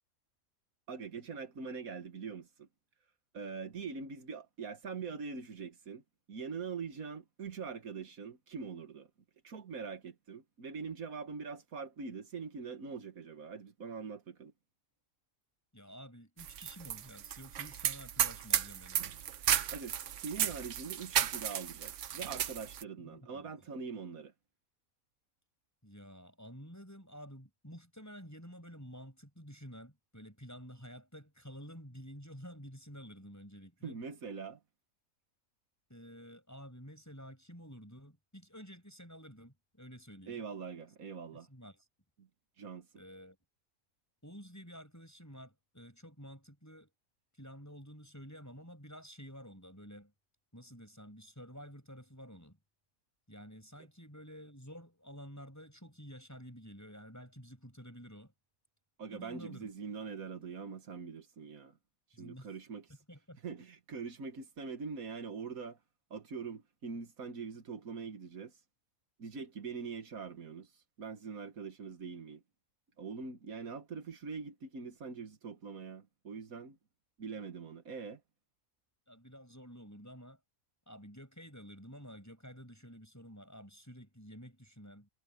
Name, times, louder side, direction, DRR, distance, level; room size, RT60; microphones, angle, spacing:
voice 1, 0.9-2.7 3.3-6.0 6.3-9.1 9.4-14.5 19.7-20.0 20.2-24.3 33.8-34.6 40.3-41.5 42.2-42.3 42.6-42.9 59.0-61.8 62.2-62.9 63.4-65.8 66.1-68.5 69.2-70.7 71.0-72.4 73.0-76.8 77.2-78.2, right 5 dB, 85° right, 2.1 m, -43 dB
voice 2, 15.7-19.2 23.0-23.5 25.8-34.0 35.9-40.4 41.5-41.9 43.0-43.4 44.2-46.9 47.4-50.1 50.5-52.6 53.3-58.3 59.1-59.7 62.1-62.5 63.1-63.4 79.1-80.4 80.9-85.1, equal, 10° left, 7.3 m, -51 dB
sound 1, 16.4-22.8, right 10 dB, 65° right, 1.1 m, -34 dB
omnidirectional pair, 1.4 m